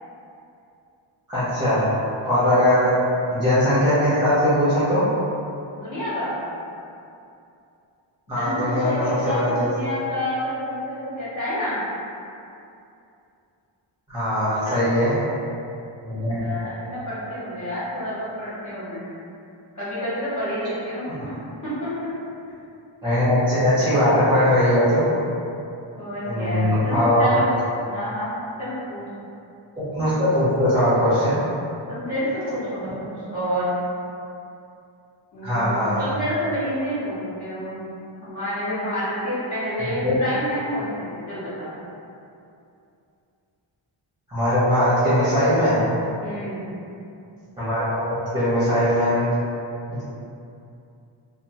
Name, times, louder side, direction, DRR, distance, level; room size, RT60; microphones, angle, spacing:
voice 1, 1.3-2.0 2.2-2.9 3.3-5.0 8.3-9.7 14.1-15.2 16.0-16.4 23.0-25.1 26.2-27.4 29.8-31.4 35.4-36.0 39.8-40.2 44.3-45.8 47.6-49.3 49.9-50.1, equal, 10° right, -14 dB, 0.8 m, -20 dB
voice 2, 5.7-6.3 8.3-11.8 14.6-14.8 16.1-19.0 19.7-21.3 21.6-22.1 26.0-27.5 27.8-28.3 28.6-29.1 31.9-33.7 35.3-37.8 38.2-41.7 46.2-46.7, equal, 40° left, -13 dB, 0.9 m, -29 dB
2.8 x 2.1 x 2.8 m, 2.6 s
wide cardioid pair, 160°, 48 cm